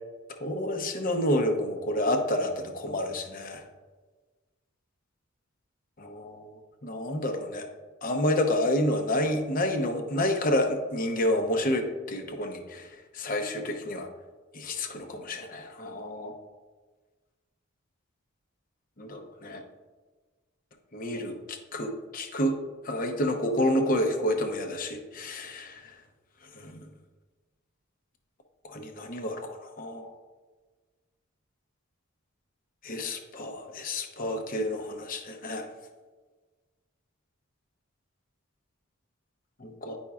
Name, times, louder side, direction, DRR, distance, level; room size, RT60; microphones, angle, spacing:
voice 1, 0.4-3.6 6.0-6.5 6.8-7.7 8.0-14.1 14.5-16.3 19.0-19.6 20.9-22.6 22.8-25.9 26.5-26.9 28.6-30.1 32.8-35.7 39.6-40.0, left 1 dB, 40° left, 4 dB, 0.7 m, -29 dB
9.9 x 5.3 x 2.3 m, 1.3 s
head